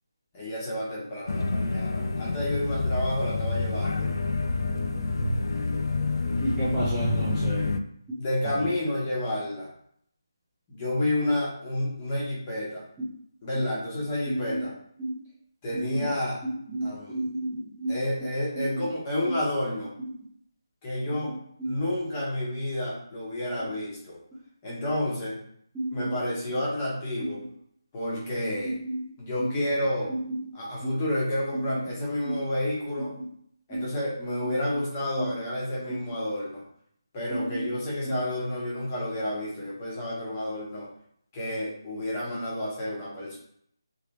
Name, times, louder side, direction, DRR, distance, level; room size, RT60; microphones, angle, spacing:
voice 1, 0.3-4.1 8.2-9.7 10.7-12.8 13.4-14.8 15.6-16.5 16.8-17.2 17.9-19.9 20.8-21.3 21.6-24.2 24.6-25.4 25.9-27.4 27.9-28.8 29.2-30.1 30.5-33.1 33.7-36.6 37.1-40.9 41.3-43.4, left 1 dB, 20° left, -6 dB, 1.3 m, -30 dB
sound 1, 1.3-7.8, left 3 dB, 65° left, 0.4 m, -28 dB
voice 2, 6.4-7.7 8.5-8.6 13.6-13.7 14.3-14.7 15.0-15.1 15.7-16.1 16.4-18.0 18.6-18.9 19.3-19.4 21.6-21.8 25.7-26.1 28.6-29.0 29.4-29.5 30.1-30.4 30.8-31.0 31.5-31.7 32.3-32.4 33.7-33.9 34.4-34.6 35.2-35.3 37.3-37.6 38.0-38.2, right 1 dB, 10° right, -10 dB, 0.6 m, -31 dB
3.5 x 3.2 x 3.0 m, 0.67 s
figure-of-eight pair, 165°, 2 cm